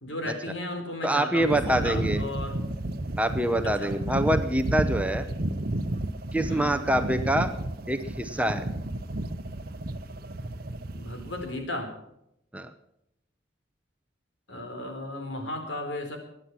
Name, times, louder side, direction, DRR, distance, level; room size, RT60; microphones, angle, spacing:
voice 1, 0.0-2.6 3.6-3.9 6.5-6.8 11.0-11.9 14.5-16.2, left 1 dB, 75° left, 4 dB, 4.0 m, -35 dB
voice 2, 1.0-2.2 3.2-5.3 6.3-7.5 7.9-8.7 12.5-12.7, right 1 dB, 5° right, 8 dB, 0.8 m, -25 dB
sound 1, 1.4-11.6, right 1 dB, 50° right, 1.0 m, -32 dB
21.5 x 9.8 x 6.1 m, 0.79 s
head